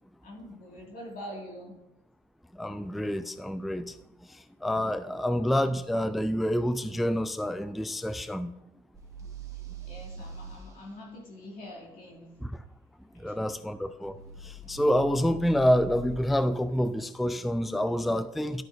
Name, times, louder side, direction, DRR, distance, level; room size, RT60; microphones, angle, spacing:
voice 1, 0.2-1.7 9.9-12.3 13.1-13.4, left 1 dB, 55° left, -1 dB, 2.2 m, -44 dB
voice 2, 2.6-3.8 4.6-8.5 12.4-12.5 13.2-14.1 14.7-18.6, equal, ahead, 12 dB, 0.3 m, -27 dB
sound 1, 8.9-10.6 14.0-16.2, right 2 dB, 20° right, 2.1 m, -42 dB
11.5 x 6.0 x 2.6 m, 0.93 s
cardioid pair, 110°, 17 cm